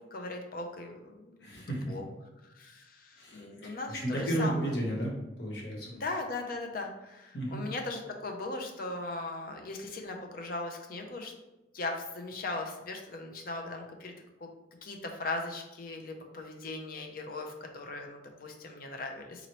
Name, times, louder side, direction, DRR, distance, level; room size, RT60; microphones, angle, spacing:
voice 1, 0.0-2.1 2.4-4.7 5.9-11.3 11.7-14.1 14.4-14.5 14.8-19.5, left 2 dB, 55° left, 3 dB, 0.6 m, -39 dB
voice 2, 1.4-1.9 3.2-6.0 7.3-7.6, right 1 dB, 70° left, -2 dB, 1.1 m, -33 dB
3.9 x 2.9 x 3.0 m, 0.98 s
head